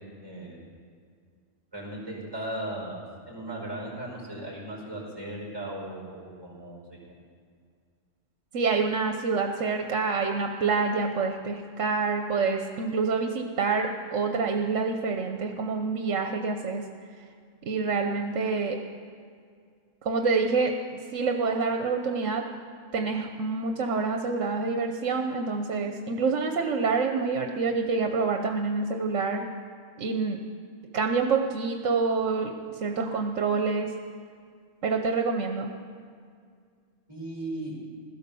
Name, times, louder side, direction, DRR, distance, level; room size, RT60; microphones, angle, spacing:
voice 1, 0.2-0.6 1.7-7.1 37.1-37.8, right 1 dB, 20° right, -4 dB, 4.9 m, -37 dB
voice 2, 8.5-16.8 17.6-18.8 20.0-20.8 21.1-22.4 22.9-29.5 30.0-30.4 30.9-33.9 34.8-35.7, right 4 dB, 70° right, 4 dB, 1.3 m, -27 dB
16.5 x 12.5 x 6.9 m, 2.2 s
omnidirectional pair, 1.3 m